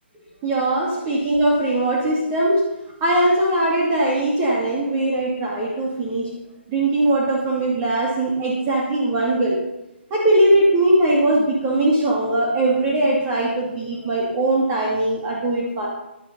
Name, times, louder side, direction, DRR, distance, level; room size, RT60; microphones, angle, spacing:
voice 1, 0.4-2.6 3.0-6.3 6.7-9.6 10.1-15.9, right 1 dB, 25° right, -4 dB, 2.5 m, -20 dB
11.5 x 9.8 x 5.4 m, 0.94 s
hypercardioid pair, 155°, 6 cm